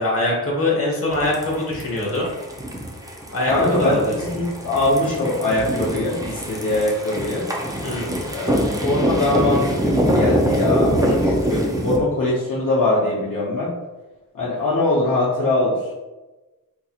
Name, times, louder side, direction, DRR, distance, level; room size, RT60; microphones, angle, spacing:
voice 1, 0.0-2.3 3.3-4.1 7.8-8.1, left 2 dB, 35° left, -4 dB, 1.0 m, -23 dB
sound 1, 1.1-12.0, equal, 10° right, 0.4 m, -24 dB
voice 2, 3.5-7.5 8.3-13.8 14.3-16.0, left 2 dB, 55° left, -7 dB, 0.8 m, -22 dB
3.9 x 2.9 x 2.3 m, 1.1 s
wide cardioid pair, 160°, 37 cm